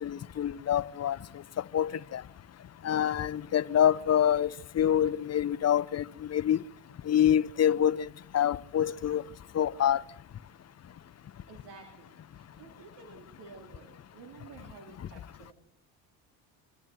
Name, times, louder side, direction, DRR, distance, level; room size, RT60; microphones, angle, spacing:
voice 1, 0.0-1.2 1.7-2.2 2.8-4.5 4.8-6.0 6.3-6.6 7.1-8.1 8.3-9.2 9.5-10.0, left 10 dB, 35° left, 0.8 m, -26 dB
voice 2, 11.5-15.5, right 5 dB, 70° right, 3.6 m, -51 dB
24.5 x 14.0 x 7.8 m
supercardioid pair, 75°, 42 cm